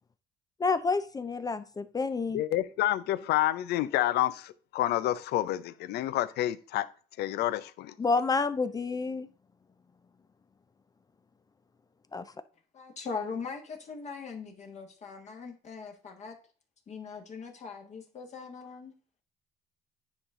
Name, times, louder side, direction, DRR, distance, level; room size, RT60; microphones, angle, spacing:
voice 1, 0.6-2.4 8.0-9.3 12.1-12.2, left 4 dB, 20° left, 12 dB, 0.5 m, -29 dB
voice 2, 2.3-6.9 7.2-7.9, left 14 dB, 75° left, 16 dB, 0.6 m, -29 dB
voice 3, 12.7-16.3 16.9-18.9, left 5 dB, 45° left, 2 dB, 1.5 m, -40 dB
9.8 x 4.1 x 3.6 m, 0.39 s
cardioid pair, 110°, 17 cm